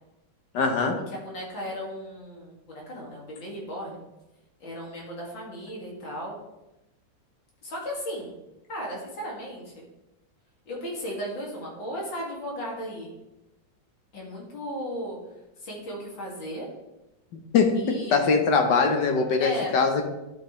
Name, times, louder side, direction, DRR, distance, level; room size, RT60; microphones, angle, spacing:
voice 1, 0.5-0.9 17.5-20.0, left 4 dB, 70° left, 4 dB, 1.6 m, -22 dB
voice 2, 1.1-4.0 4.6-6.4 7.6-8.3 8.7-9.7 10.7-13.1 14.1-15.2 15.6-16.7 17.8-18.3 19.4-19.7, equal, 90° left, -3 dB, 2.9 m, -35 dB
11.5 x 5.7 x 3.2 m, 0.97 s
omnidirectional pair, 2.0 m